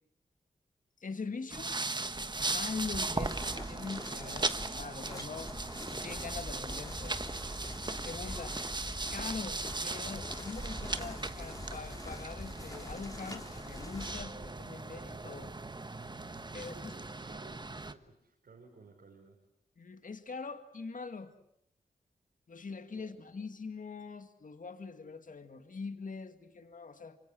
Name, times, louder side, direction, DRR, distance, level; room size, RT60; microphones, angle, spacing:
voice 1, 1.0-1.8 2.4-7.2 8.0-8.6 9.1-15.5 16.5-16.9 19.8-21.3 22.5-27.2, left 4 dB, 60° left, 9 dB, 2.0 m, -43 dB
sound 1, 1.5-17.9, right 2 dB, 30° right, 1.4 m, -38 dB
sound 2, 3.1-14.3, left 1 dB, 20° left, 3.3 m, -45 dB
voice 2, 16.5-19.3 22.9-23.2, right 4 dB, 80° right, -1 dB, 5.0 m, -57 dB
26.0 x 24.0 x 8.0 m, 0.73 s
cardioid pair, 60°, 16 cm